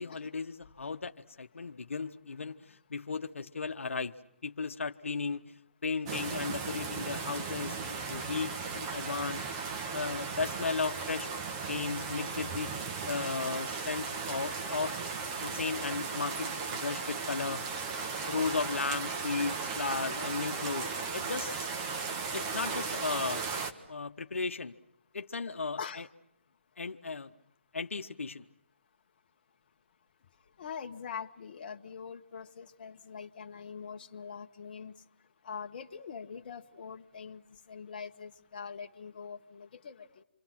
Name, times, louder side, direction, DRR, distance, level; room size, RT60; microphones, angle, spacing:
voice 1, 0.0-4.2 4.4-9.5 9.9-11.3 11.7-14.9 15.4-17.7 18.3-21.7 22.3-23.4 23.9-24.8 25.1-26.1 26.8-27.3 27.7-28.4, left 4 dB, 80° left, 6 dB, 1.1 m, -35 dB
sound 1, 6.0-23.7, right 5 dB, 25° right, 1.6 m, -36 dB
voice 2, 30.6-34.9 35.4-37.4 37.7-40.2, left 6 dB, 40° left, 4 dB, 1.5 m, -43 dB
28.5 x 25.5 x 6.0 m, 0.80 s
hypercardioid pair, 160°, 7 cm